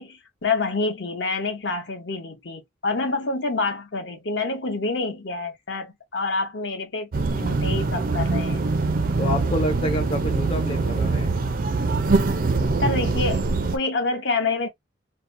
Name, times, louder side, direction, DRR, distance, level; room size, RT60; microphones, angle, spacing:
voice 1, 0.0-8.6 12.8-14.7, left 3 dB, 70° left, 0.9 m, -27 dB
sound 1, 7.1-13.8, right 3 dB, 45° right, 0.4 m, -23 dB
voice 2, 9.2-11.4, left 1 dB, 30° left, 0.5 m, -28 dB
2.8 x 2.0 x 2.5 m
head